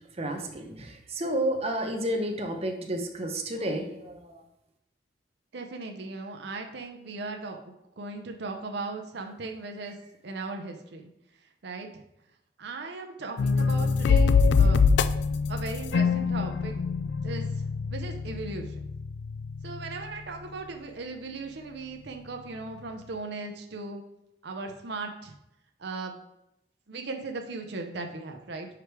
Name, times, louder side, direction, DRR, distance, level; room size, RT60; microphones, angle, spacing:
voice 1, 0.2-4.4, right 1 dB, 35° right, 3 dB, 0.8 m, -31 dB
voice 2, 5.5-7.6 8.0-10.0 10.2-11.1 11.6-11.9 12.6-14.8 15.5-16.7 17.2-17.5 17.9-18.9 19.6-24.0 24.4-25.3 25.8-26.2 26.9-28.7, right 3 dB, 70° right, 4 dB, 0.7 m, -37 dB
sound 1, 13.4-20.2, left 5 dB, 75° left, 0.3 m, -25 dB
4.9 x 4.8 x 4.7 m, 0.85 s
head